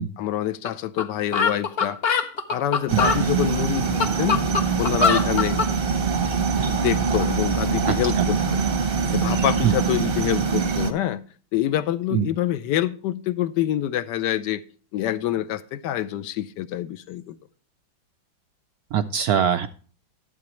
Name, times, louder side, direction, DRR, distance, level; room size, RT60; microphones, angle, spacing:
voice 1, 0.2-2.0 2.5-4.5 4.8-5.6 6.7-8.7 9.1-11.2 11.5-14.6 14.9-17.4, left 12 dB, 70° left, 1.1 m, -26 dB
sound 1, 0.6-0.7 1.0-1.1 1.3-3.2 3.8-5.7, left 5 dB, 50° left, 0.7 m, -22 dB
sound 2, 2.9-10.9, right 5 dB, 40° right, 0.8 m, -23 dB
voice 2, 7.9-8.3 9.6-9.7 12.1-12.3 18.9-19.7, right 9 dB, 75° right, 0.8 m, -22 dB
11.5 x 8.5 x 3.0 m
omnidirectional pair, 2.1 m